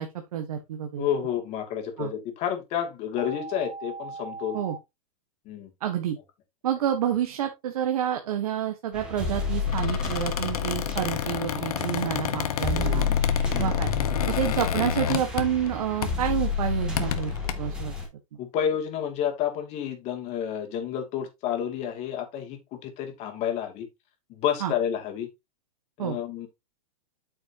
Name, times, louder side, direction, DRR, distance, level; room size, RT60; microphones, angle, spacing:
voice 1, 0.0-1.1 2.0-2.1 4.5-4.8 5.8-6.2 6.6-13.1 13.6-13.9 14.3-17.9 24.6-24.7 26.0-26.2, right 10 dB, 70° right, 1.5 m, -29 dB
voice 2, 1.0-4.6 5.5-5.7 12.1-12.2 12.7-13.2 13.5-13.8 18.4-23.9 24.3-25.3 26.0-26.5, left 9 dB, 35° left, 2.5 m, -30 dB
sound 1, 3.2-4.8, right 4 dB, 20° right, 0.6 m, -38 dB
sound 2, 8.9-18.1, left 5 dB, 5° right, 2.6 m, -30 dB
Squeak, 9.6-15.7 16.0-16.3 16.8-17.5, left 10 dB, 75° left, 1.3 m, -30 dB
8.7 x 6.4 x 2.9 m
hypercardioid pair, 140°, 19 cm